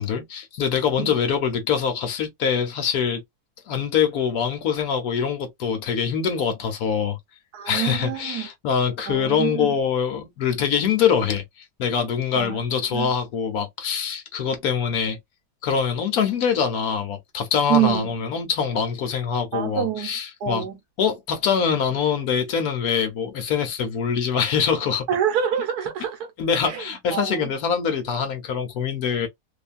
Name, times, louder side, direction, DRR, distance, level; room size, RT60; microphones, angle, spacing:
voice 1, 0.0-3.2 3.7-7.2 7.7-11.4 11.8-15.2 15.6-20.7 21.0-25.1 26.4-29.3, left 7 dB, 65° left, 1.1 m, -24 dB
voice 2, 7.5-8.5 9.1-9.7 12.3-12.6 12.9-13.1 17.7-18.1 19.5-20.1 20.4-20.8 25.1-26.3 26.6-26.8 27.1-27.5, right 10 dB, 70° right, 1.2 m, -26 dB
3.0 x 2.2 x 2.4 m
omnidirectional pair, 1.8 m